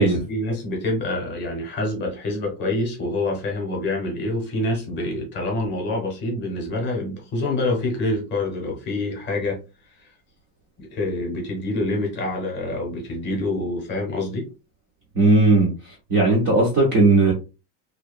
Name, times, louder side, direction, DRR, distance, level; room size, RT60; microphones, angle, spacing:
voice 1, 0.0-9.6 10.0-10.1 10.8-14.5, left 2 dB, 25° left, 0.7 m, -26 dB
voice 2, 15.2-15.7 16.1-17.3, right 2 dB, 25° right, 0.3 m, -16 dB
2.8 x 2.2 x 2.4 m
cardioid pair, 175°, 47 cm